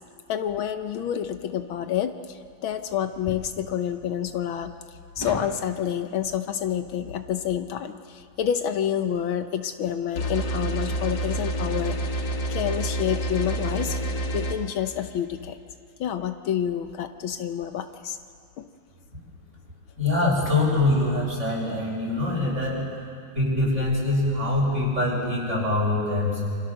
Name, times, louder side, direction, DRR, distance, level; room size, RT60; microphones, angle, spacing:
voice 1, 0.3-4.7 5.2-15.6 16.0-18.2 18.6-18.7, left 9 dB, 75° left, 8 dB, 1.7 m, -28 dB
sound 1, 1.2-1.3 3.3-3.6 5.2-5.6, left 1 dB, 10° left, 1.7 m, -35 dB
sound 2, 10.2-14.5, right 1 dB, 60° left, 2.4 m, -28 dB
voice 2, 20.0-22.8 23.3-26.4, left 2 dB, 35° right, -3 dB, 7.1 m, -24 dB
28.0 x 26.0 x 6.6 m, 2.4 s
omnidirectional pair, 2.3 m